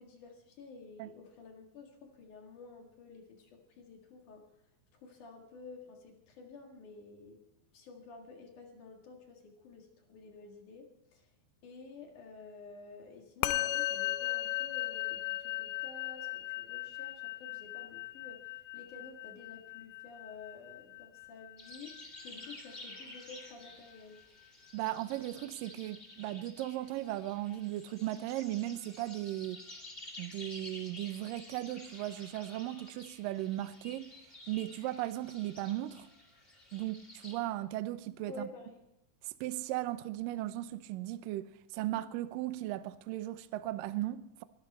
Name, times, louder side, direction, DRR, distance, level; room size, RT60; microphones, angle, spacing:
voice 1, 0.0-4.4 4.9-7.4 7.7-11.3 11.6-18.4 18.7-24.2 38.3-38.8, left 4 dB, 55° left, 3.0 m, -51 dB
Musical instrument, 13.4-23.0, left 15 dB, 85° left, 2.9 m, -37 dB
sound 1, 21.6-37.4, left 1 dB, 20° left, 1.7 m, -51 dB
voice 2, 24.7-29.6 30.2-34.1 34.5-36.1 36.7-38.5 39.2-44.4, right 15 dB, 90° right, 1.9 m, -37 dB
22.0 x 12.0 x 4.3 m
omnidirectional pair, 4.9 m